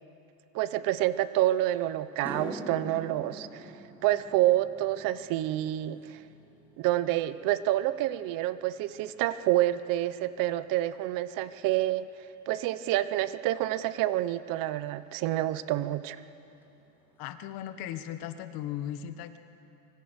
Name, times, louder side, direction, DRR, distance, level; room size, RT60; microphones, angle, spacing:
voice 1, 0.5-3.7 4.0-6.2 6.8-12.1 12.5-16.2, right 14 dB, 50° right, 14 dB, 0.9 m, -28 dB
sound 1, 1.5-1.6 2.0-10.6 10.8-11.3 14.9-15.0 16.6-16.7 17.0-17.1 17.4-17.9, equal, 5° right, 2.6 m, -46 dB
voice 2, 17.2-19.4, left 11 dB, 50° left, 10 dB, 1.4 m, -37 dB
25.5 x 24.0 x 6.5 m, 3.0 s
supercardioid pair, 150°, 44 cm